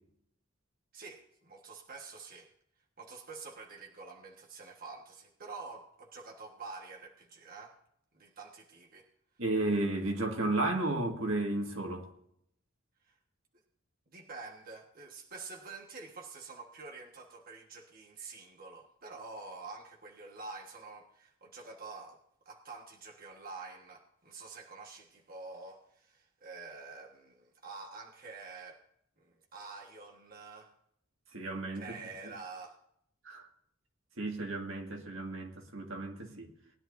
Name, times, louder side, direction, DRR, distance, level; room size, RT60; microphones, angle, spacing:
voice 1, 0.9-2.5 3.0-7.8 8.1-9.1 13.1-13.2 14.1-22.2 22.4-28.8 29.2-30.7 31.7-32.8, right 4 dB, 45° right, 1.4 m, -47 dB
voice 2, 9.4-12.1 31.3-32.0 32.2-32.3 33.2-33.5 34.2-36.5, right 2 dB, 80° right, 1.9 m, -33 dB
19.5 x 11.0 x 2.6 m
head